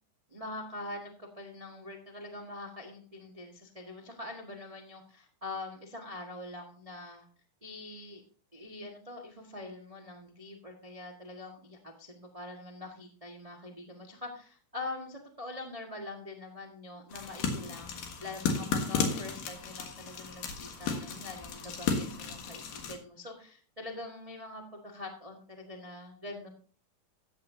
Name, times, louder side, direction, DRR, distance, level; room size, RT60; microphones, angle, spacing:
voice 1, 0.3-7.3 7.6-8.2 8.5-17.9 18.2-26.5, left 2 dB, 70° right, 1 dB, 0.3 m, -44 dB
sound 1, 17.1-22.9, left 5 dB, 90° left, 3.3 m, -34 dB
15.0 x 8.7 x 2.8 m, 0.43 s
omnidirectional pair, 3.7 m